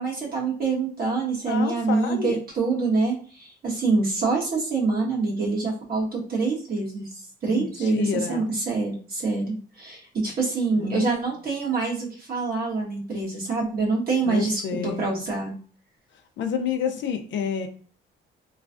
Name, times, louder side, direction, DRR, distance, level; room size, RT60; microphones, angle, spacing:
voice 1, 0.0-15.5, right 3 dB, 50° right, -3 dB, 1.3 m, -26 dB
voice 2, 1.5-2.4 7.5-8.4 10.8-11.0 14.3-15.2 16.4-17.7, left 7 dB, 70° left, 7 dB, 0.5 m, -29 dB
3.1 x 2.3 x 2.4 m, 0.43 s
cardioid pair, 90°, 20 cm